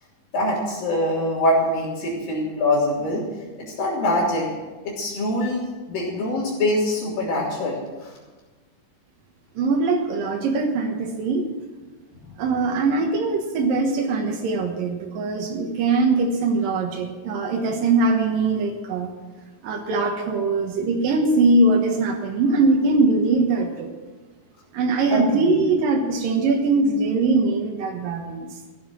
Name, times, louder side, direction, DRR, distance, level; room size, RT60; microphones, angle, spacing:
voice 1, 0.3-3.3 3.6-4.5 4.8-8.1 12.1-12.2 25.1-25.6, left 1 dB, 90° left, -8 dB, 5.1 m, -24 dB
voice 2, 9.6-11.4 12.4-19.1 19.6-23.9 24.7-28.5, right 3 dB, 90° right, 1 dB, 3.1 m, -21 dB
15.0 x 10.5 x 7.6 m, 1.3 s
omnidirectional pair, 3.9 m